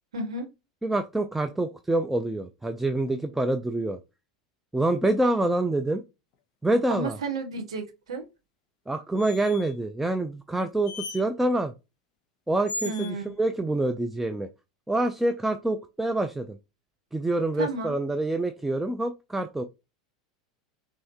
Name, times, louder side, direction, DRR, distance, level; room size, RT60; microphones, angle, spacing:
voice 1, 0.1-0.5 6.9-8.3 12.8-13.4 17.6-17.9, right 3 dB, 70° right, 4 dB, 1.4 m, -32 dB
voice 2, 0.8-4.0 4.7-6.0 6.6-7.2 8.9-11.7 12.5-14.5 14.9-16.6 17.1-19.6, right 2 dB, 5° right, 7 dB, 0.5 m, -26 dB
sound 1, 9.2-9.7 10.8-11.2 12.7-13.1, left 2 dB, 45° left, 1.1 m, -36 dB
5.5 x 3.1 x 2.8 m, 0.26 s
figure-of-eight pair, 85°, 3 cm